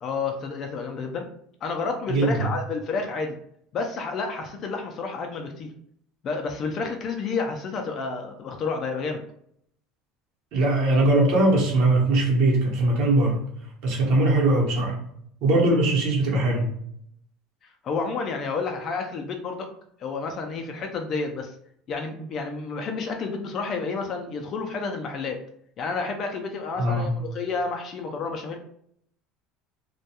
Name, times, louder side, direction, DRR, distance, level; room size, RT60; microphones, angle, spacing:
voice 1, 0.0-1.3 1.6-3.4 3.7-5.7 6.2-9.2 17.8-19.7 20.0-21.6 21.9-25.4 25.8-28.6, left 4 dB, 40° left, 3 dB, 0.4 m, -30 dB
voice 2, 2.1-2.5 10.5-13.4 13.8-15.0 15.4-16.7 26.8-27.1, right 2 dB, 60° right, -1 dB, 0.9 m, -21 dB
2.2 x 2.2 x 2.8 m, 0.68 s
cardioid pair, 135°, 0 cm